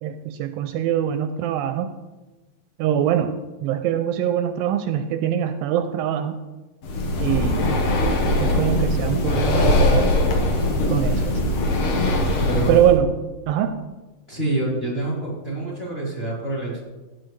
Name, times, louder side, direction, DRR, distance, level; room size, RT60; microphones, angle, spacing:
voice 1, 0.0-1.9 2.8-3.3 3.6-6.4 7.2-7.7 8.4-10.1 10.9-11.5 12.7-13.1 13.5-13.8, right 10 dB, 80° right, 8 dB, 2.2 m, -23 dB
Breathing, 6.8-13.0, left 1 dB, 60° left, 1.8 m, -21 dB
voice 2, 12.5-12.8 14.3-16.8, right 2 dB, 15° left, -5 dB, 4.0 m, -26 dB
15.0 x 9.1 x 3.2 m, 1.1 s
omnidirectional pair, 4.2 m